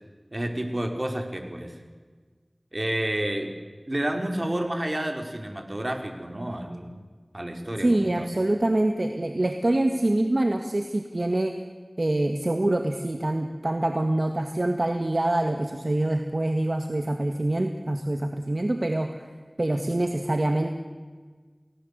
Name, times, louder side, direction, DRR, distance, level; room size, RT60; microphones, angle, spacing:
voice 1, 0.3-1.8 2.7-3.5 3.9-7.0 7.3-8.3, right 1 dB, 40° right, 5 dB, 4.4 m, -30 dB
voice 2, 7.8-11.6 12.0-19.3 19.6-20.7, right 1 dB, 60° right, 5 dB, 1.9 m, -25 dB
29.5 x 19.5 x 8.3 m, 1.5 s
wide cardioid pair, 40°, 0 cm